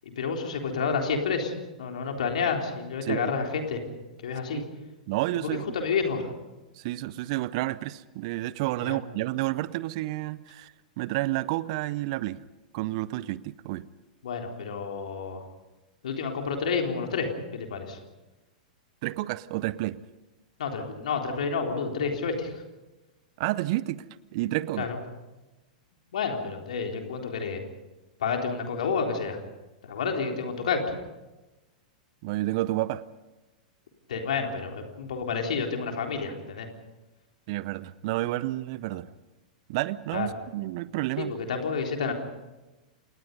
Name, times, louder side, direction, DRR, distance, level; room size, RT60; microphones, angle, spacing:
voice 1, 0.2-1.5 1.8-3.8 4.2-4.6 5.4-6.3 8.8-9.0 14.2-15.4 16.0-18.0 20.6-22.5 24.8-25.0 26.1-27.6 28.2-29.4 29.8-30.8 34.1-36.7 40.1-40.3 41.2-42.1, left 5 dB, 65° left, 3 dB, 3.8 m, -29 dB
voice 2, 5.1-5.6 6.8-12.4 12.7-13.9 19.0-20.0 23.4-24.0 24.3-24.9 32.2-33.0 37.5-39.1 39.7-41.3, right 17 dB, 50° right, 19 dB, 0.7 m, -30 dB
28.0 x 19.5 x 5.4 m, 1.1 s
figure-of-eight pair, 100°, 4 cm